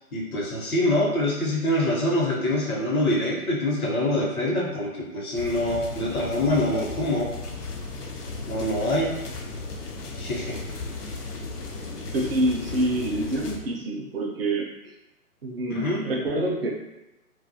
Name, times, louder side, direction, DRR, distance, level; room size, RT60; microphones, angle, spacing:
voice 1, 0.1-7.3 8.5-9.2 10.2-10.6 15.7-16.0, left 1 dB, 65° left, -4 dB, 0.9 m, -25 dB
sound 1, 5.4-13.6, left 3 dB, 85° left, 0.7 m, -35 dB
voice 2, 12.1-14.9 15.4-16.7, right 1 dB, 40° right, 0 dB, 0.4 m, -27 dB
2.3 x 2.1 x 2.6 m, 0.97 s
figure-of-eight pair, 140°, 46 cm